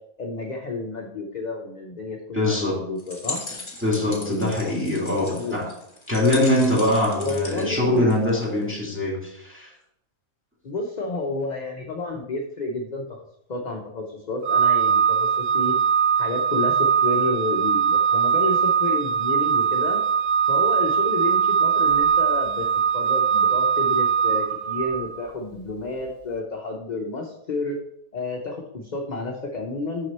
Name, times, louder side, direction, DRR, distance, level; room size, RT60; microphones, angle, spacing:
voice 1, 0.2-3.4 4.2-4.5 5.2-5.6 7.1-8.2 10.6-13.2 13.5-15.7 16.2-20.0 20.5-22.7 22.9-27.8 28.1-30.1, left 2 dB, 40° left, 1 dB, 0.7 m, -30 dB
voice 2, 2.3-2.8 3.8-5.7 6.1-9.7, left 1 dB, 10° right, -3 dB, 2.1 m, -23 dB
sound 1, 3.0-8.6, left 2 dB, 20° left, 1.0 m, -38 dB
Organ, 14.4-25.2, right 7 dB, 60° right, 0.7 m, -21 dB
6.3 x 5.9 x 4.2 m, 0.77 s
omnidirectional pair, 1.5 m